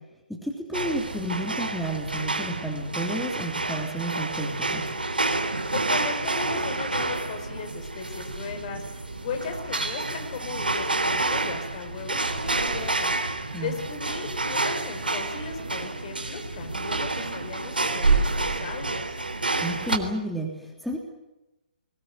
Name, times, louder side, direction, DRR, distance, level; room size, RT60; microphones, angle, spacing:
voice 1, 0.3-4.8 13.5-13.7 19.5-21.0, right 1 dB, ahead, 1 dB, 3.2 m, -31 dB
sound 1, 0.7-20.0, right 3 dB, 80° right, 3.7 m, -28 dB
voice 2, 5.7-13.2 13.6-19.2, left 5 dB, 40° left, 6 dB, 5.0 m, -37 dB
22.0 x 19.5 x 9.6 m, 1.0 s
figure-of-eight pair, 130°, 5 cm